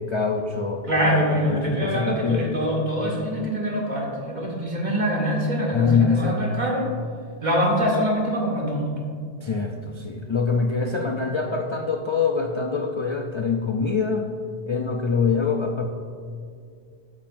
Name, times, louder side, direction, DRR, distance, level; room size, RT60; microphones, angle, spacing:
voice 1, 0.0-0.9 1.3-2.5 5.7-6.3 9.4-14.3 14.7-15.8, left 5 dB, 40° left, 3 dB, 0.4 m, -24 dB
voice 2, 0.8-6.9 7.4-9.0, equal, 40° right, -2 dB, 1.8 m, -24 dB
13.0 x 8.8 x 2.5 m, 2.2 s
omnidirectional pair, 1.1 m